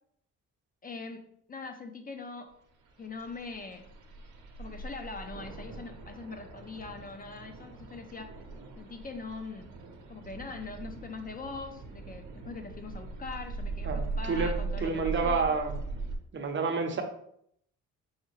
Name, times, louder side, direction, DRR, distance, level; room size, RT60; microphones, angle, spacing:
voice 1, 0.8-1.2 1.5-2.6 3.0-3.9 4.6-8.4 8.8-9.7 10.1-15.5, left 4 dB, 30° left, 6 dB, 0.4 m, -42 dB
sound 1, 2.8-16.2, right 3 dB, 75° right, 0.8 m, -40 dB
voice 2, 13.8-14.5 14.8-15.8 16.3-17.0, right 4 dB, 40° right, 5 dB, 0.6 m, -29 dB
4.7 x 2.2 x 3.1 m, 0.69 s
cardioid pair, 90°, 30 cm